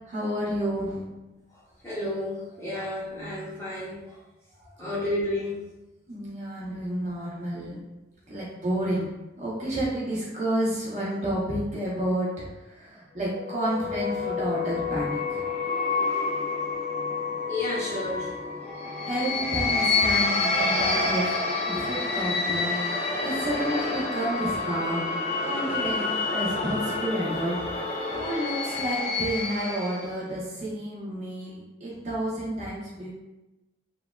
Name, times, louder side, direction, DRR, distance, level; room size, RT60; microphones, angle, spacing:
voice 1, 0.1-1.1 6.1-7.8 8.3-9.1 9.4-15.4 19.1-21.4 21.7-25.1 25.4-33.1, right 1 dB, 40° right, -7 dB, 0.7 m, -30 dB
voice 2, 1.8-4.2 4.8-5.6 17.5-18.3, left 1 dB, 15° left, -9 dB, 0.8 m, -31 dB
sound 1, 13.3-30.2, left 3 dB, 35° left, 0.3 m, -28 dB
3.2 x 2.2 x 2.3 m, 1.0 s
head